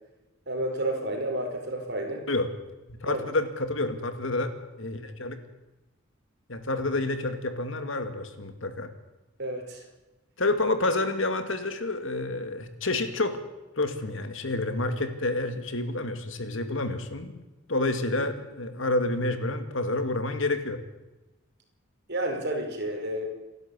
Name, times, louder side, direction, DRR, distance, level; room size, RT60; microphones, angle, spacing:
voice 1, 0.5-2.3 3.1-3.3 9.4-9.8 22.1-23.3, right 1 dB, 55° right, 3 dB, 5.1 m, -30 dB
voice 2, 2.9-4.5 4.8-5.4 6.5-8.9 10.4-13.4 13.8-17.4 17.7-20.8, left 2 dB, 65° left, 8 dB, 2.3 m, -29 dB
28.0 x 12.0 x 8.4 m, 1.1 s
head